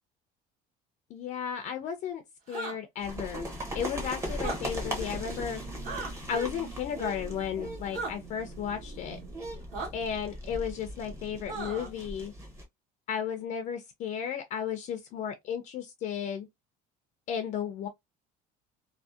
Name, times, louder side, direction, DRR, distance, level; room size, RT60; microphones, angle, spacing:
voice 1, 1.1-3.5 3.7-5.6 6.3-9.2 9.9-12.3 13.1-16.5 17.3-17.9, left 8 dB, 45° left, 0.4 m, -34 dB
sound 1, 2.5-2.8 4.3-4.6 5.8-6.1 7.9-8.1 9.7-9.9 11.5-11.9, right 3 dB, 50° right, 1.1 m, -35 dB
sound 2, 3.0-12.6, equal, 15° right, 0.7 m, -39 dB
sound 3, 5.0-10.0, right 6 dB, 75° right, 0.9 m, -49 dB
2.6 x 2.0 x 2.3 m
cardioid pair, 145°, 17 cm